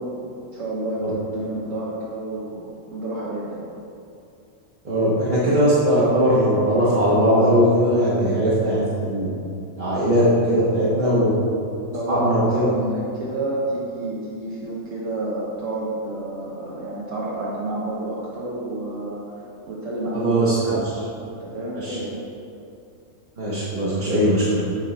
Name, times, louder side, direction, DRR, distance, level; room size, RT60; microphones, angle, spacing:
voice 1, 0.0-3.6 11.0-11.3 11.9-20.4 20.7-20.8 21.4-22.2, right 1 dB, 70° right, -7 dB, 1.4 m, -30 dB
voice 2, 4.8-9.3 9.8-11.3 12.1-12.7 20.1-20.8 21.7-22.0 23.4-24.6, equal, 40° right, -10 dB, 1.2 m, -19 dB
8.9 x 4.4 x 4.1 m, 2.6 s
omnidirectional pair, 1.4 m